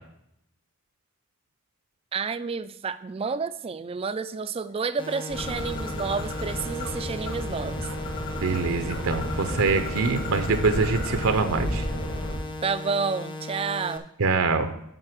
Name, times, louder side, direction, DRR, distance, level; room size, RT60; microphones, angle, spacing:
voice 1, 2.1-7.9 12.6-14.0, right 5 dB, 25° right, 13 dB, 0.3 m, -30 dB
sound 1, 5.0-14.0, left 2 dB, 20° left, 0.6 m, -37 dB
sound 2, 5.3-12.4, equal, 75° left, 3.5 m, -33 dB
Bird, 5.3-11.4, left 4 dB, 45° left, 1.6 m, -40 dB
voice 2, 8.4-11.9 14.2-14.7, right 4 dB, 75° right, 7 dB, 0.7 m, -24 dB
7.8 x 5.3 x 5.9 m, 0.77 s
head